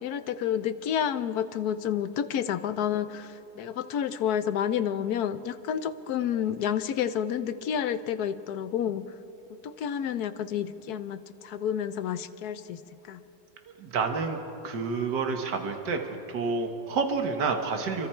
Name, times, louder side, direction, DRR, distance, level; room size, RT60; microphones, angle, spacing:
voice 1, 0.0-9.1 9.5-12.8 13.1-13.2, left 9 dB, 65° left, 12 dB, 1.2 m, -30 dB
voice 2, 13.8-14.4 14.6-16.0 16.3-18.1, right 4 dB, 75° right, 5 dB, 2.0 m, -29 dB
28.5 x 24.5 x 4.5 m, 3.0 s
omnidirectional pair, 1.9 m